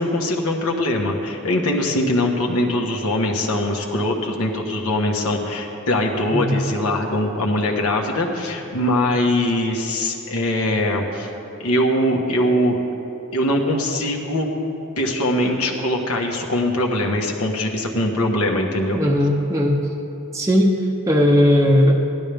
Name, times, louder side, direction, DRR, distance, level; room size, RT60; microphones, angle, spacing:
voice 1, 0.0-11.3 11.6-12.8 13.3-14.5 15.0-19.0, left 1 dB, 75° left, 1 dB, 1.3 m, -22 dB
voice 2, 18.9-19.8 20.3-20.8 21.1-22.0, equal, 15° right, 0 dB, 0.7 m, -17 dB
16.0 x 12.0 x 3.4 m, 2.9 s
head